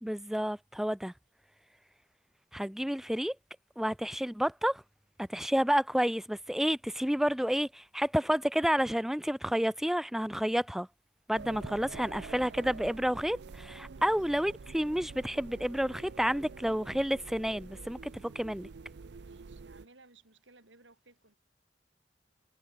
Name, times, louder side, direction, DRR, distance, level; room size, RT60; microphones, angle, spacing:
voice 1, 0.0-1.1 2.5-3.4 3.8-4.8 5.2-10.9 11.3-18.7, equal, ahead, 0.4 m, -30 dB
sound 1, 11.3-19.9, right 4 dB, 65° right, 0.5 m, -47 dB
voice 2, 19.2-21.3, right 3 dB, 85° right, 7.2 m, -60 dB
head